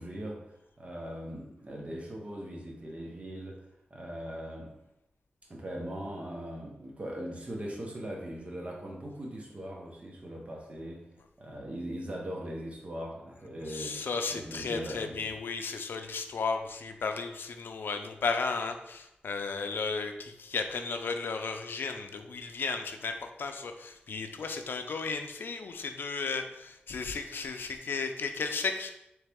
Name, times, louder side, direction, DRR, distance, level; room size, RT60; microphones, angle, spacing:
voice 1, 0.0-3.6 3.9-4.8 5.5-11.1 11.4-15.3, right 1 dB, 40° right, -1 dB, 1.0 m, -40 dB
voice 2, 13.7-28.9, left 4 dB, 85° left, 6 dB, 0.4 m, -34 dB
4.0 x 3.3 x 3.5 m, 0.85 s
wide cardioid pair, 100°, 4 cm